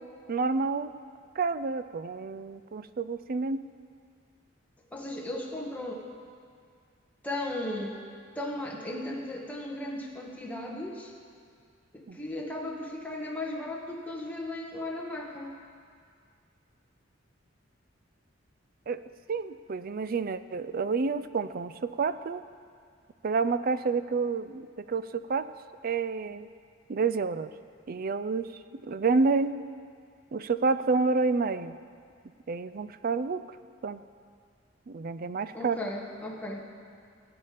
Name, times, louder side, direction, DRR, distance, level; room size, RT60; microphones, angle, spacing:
voice 1, 0.3-0.9 1.4-3.6 12.1-12.2 18.9-19.0 19.3-22.4 23.2-25.5 25.8-26.5 26.9-27.5 27.9-28.5 28.8-29.6 30.3-31.8 32.5-33.4 33.8-34.0 34.9-35.8, right 4 dB, 50° right, 13 dB, 0.4 m, -29 dB
voice 2, 4.9-6.0 7.2-8.0 8.3-11.1 11.9-15.6 35.5-36.6, left 1 dB, 10° left, -2 dB, 1.5 m, -36 dB
18.5 x 8.8 x 5.0 m, 2.2 s
head